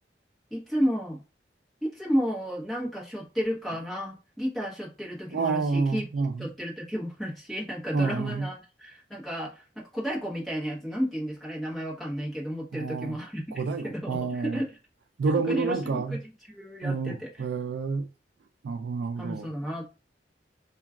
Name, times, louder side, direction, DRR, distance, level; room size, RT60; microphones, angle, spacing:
voice 1, 0.5-1.2 1.8-14.7 15.4-16.2 16.5-17.5 19.2-19.8, equal, ahead, 0.9 m, -32 dB
voice 2, 5.3-6.5 7.9-8.5 12.7-13.2 13.5-14.6 15.2-16.2 16.8-18.1 18.6-19.5, right 4 dB, 70° right, 0.3 m, -29 dB
2.3 x 2.2 x 3.5 m
head